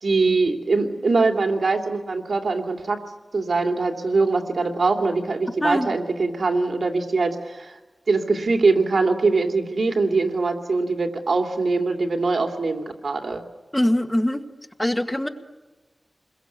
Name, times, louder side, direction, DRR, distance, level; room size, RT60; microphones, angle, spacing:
voice 1, 0.0-3.0 3.3-7.7 8.1-13.4, right 3 dB, 80° right, 4 dB, 2.8 m, -22 dB
voice 2, 5.6-6.0 13.7-14.4 14.8-15.3, left 1 dB, 15° left, 7 dB, 1.7 m, -22 dB
28.5 x 22.0 x 8.3 m, 1.1 s
wide cardioid pair, 85°, 0 cm